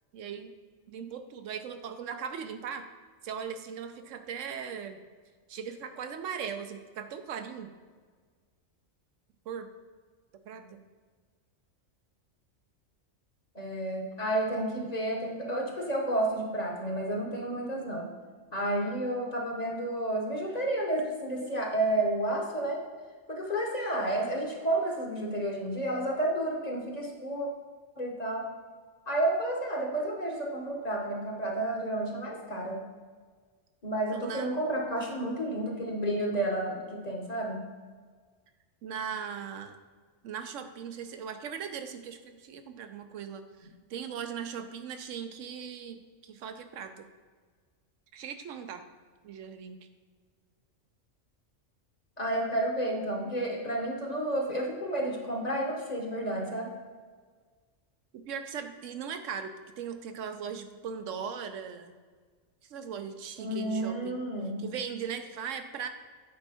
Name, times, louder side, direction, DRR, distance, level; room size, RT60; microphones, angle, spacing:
voice 1, 0.1-0.5 0.9-2.9 3.2-5.0 5.5-7.7 9.5-9.7 10.5-10.8 34.1-34.5 38.8-39.8 40.2-47.1 48.1-48.8 49.2-49.9 58.1-62.0 62.7-64.2 64.6-65.9, right 7 dB, 75° right, 8 dB, 1.0 m, -39 dB
voice 2, 13.5-18.1 18.5-22.8 23.3-27.5 28.0-28.5 29.1-32.8 33.8-37.6 52.2-56.7 63.4-64.6, right 1 dB, 35° left, 0 dB, 1.0 m, -31 dB
8.8 x 4.5 x 4.2 m, 1.5 s
omnidirectional pair, 1.3 m